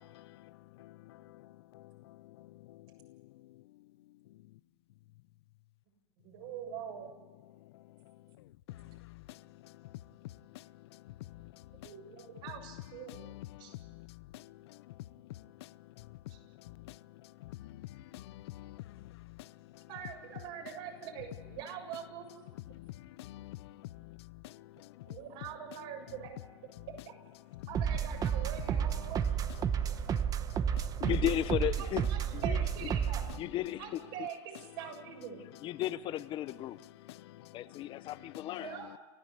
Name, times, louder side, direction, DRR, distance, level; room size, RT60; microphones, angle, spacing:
voice 1, 0.1-0.5 0.8-3.2 8.7-10.0 10.5-11.9 13.1-14.9 15.3-16.2 16.6-19.4 22.7-25.2 27.6-27.7 29.7-30.9 35.8-35.9 36.5-38.6, left 16 dB, 80° left, 0.6 m, -50 dB
voice 2, 6.2-7.1 11.8-13.3 13.6-13.7 16.3-16.4 19.9-22.3 25.1-26.4 27.7-29.4 31.8-33.3 33.8-35.4 38.6-39.0, right 8 dB, 65° right, 7.5 m, -44 dB
sound 1, 27.7-33.4, right 8 dB, 25° right, 0.9 m, -31 dB
voice 3, 31.0-32.0 32.3-32.6 33.4-33.8 35.6-36.8 37.5-38.7, left 13 dB, 40° left, 0.8 m, -34 dB
28.5 x 16.0 x 8.2 m
supercardioid pair, 135°, 13 cm